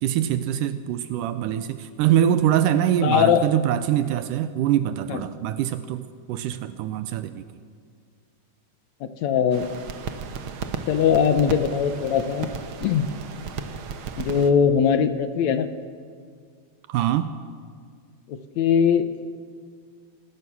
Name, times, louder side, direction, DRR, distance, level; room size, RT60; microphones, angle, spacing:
voice 1, 0.0-7.4 16.9-17.3, right 11 dB, 85° right, 11 dB, 2.3 m, -24 dB
voice 2, 3.0-3.5 5.1-5.2 9.0-9.7 10.9-12.5 12.8-13.1 14.2-15.7 18.3-19.1, left 7 dB, 70° left, 10 dB, 2.1 m, -21 dB
sound 1, 9.5-14.5, right 6 dB, 60° right, 1.4 m, -34 dB
26.0 x 19.5 x 6.1 m, 2.1 s
omnidirectional pair, 3.7 m